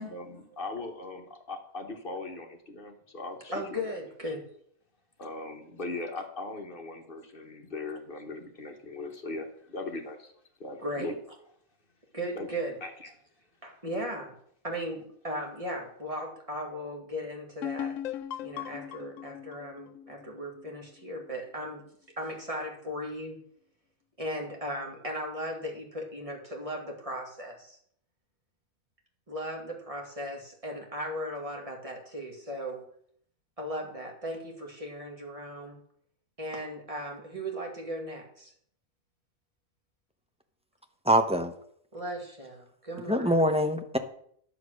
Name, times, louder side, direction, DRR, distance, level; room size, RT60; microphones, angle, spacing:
voice 1, 0.0-3.8 5.2-10.3 10.6-11.2 12.3-12.5 12.8-13.1, left 3 dB, 40° left, 4 dB, 1.4 m, -39 dB
voice 2, 3.5-4.4 10.8-11.1 12.1-12.8 13.6-14.4 14.6-18.0 18.4-21.8 22.2-23.4 24.2-27.8 29.3-32.9 33.6-35.8 36.4-38.5 41.9-43.3, equal, 25° right, 1 dB, 2.2 m, -37 dB
sound 1, 17.6-21.2, left 10 dB, 70° left, 0.9 m, -38 dB
voice 3, 41.0-41.5 43.1-44.0, equal, 5° right, 6 dB, 0.7 m, -24 dB
10.5 x 7.1 x 6.3 m, 0.65 s
omnidirectional pair, 1.4 m